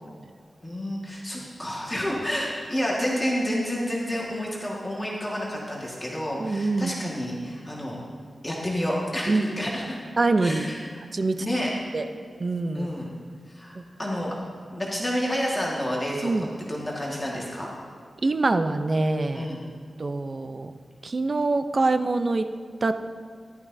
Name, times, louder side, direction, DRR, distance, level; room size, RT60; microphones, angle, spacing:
voice 1, 0.6-8.0 8.4-10.0 10.4-10.9 11.4-11.7 12.7-13.2 13.5-14.3 14.7-17.7 19.3-19.6, equal, 15° left, -4 dB, 1.6 m, -29 dB
voice 2, 6.4-7.0 9.3-9.5 10.2-10.7 11.1-11.5 11.9-12.1 12.4-12.9 13.8-13.9 16.2-16.5 18.2-19.5 20.0-20.7 21.0-22.5 22.8-22.9, right 3 dB, 40° right, 9 dB, 0.5 m, -24 dB
14.0 x 12.0 x 2.7 m, 2.1 s
wide cardioid pair, 120°, 0 cm